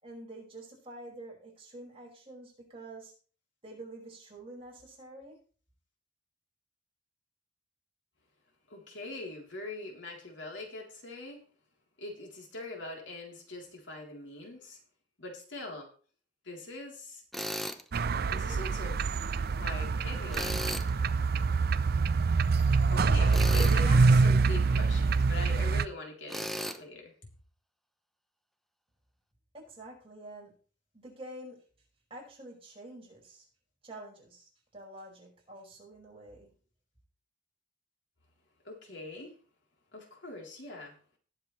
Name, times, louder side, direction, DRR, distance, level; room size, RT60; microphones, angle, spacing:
voice 1, 0.0-3.1 3.6-5.4 29.5-30.5 30.9-31.6 32.1-33.5 33.8-36.5, right 1 dB, 30° right, -2 dB, 5.3 m, -47 dB
voice 2, 8.7-11.4 12.0-14.8 15.2-15.9 16.4-17.2 18.3-19.0 19.5-20.6 22.9-27.3 38.6-39.3 39.9-41.0, left 2 dB, 70° left, 0 dB, 3.5 m, -42 dB
Tools, 17.3-17.8 20.3-20.9 23.3-23.8 26.3-26.8, equal, ahead, 0.8 m, -35 dB
sound 1, 17.9-25.9, right 4 dB, 55° right, 0.5 m, -25 dB
19.5 x 7.4 x 3.2 m, 0.39 s
head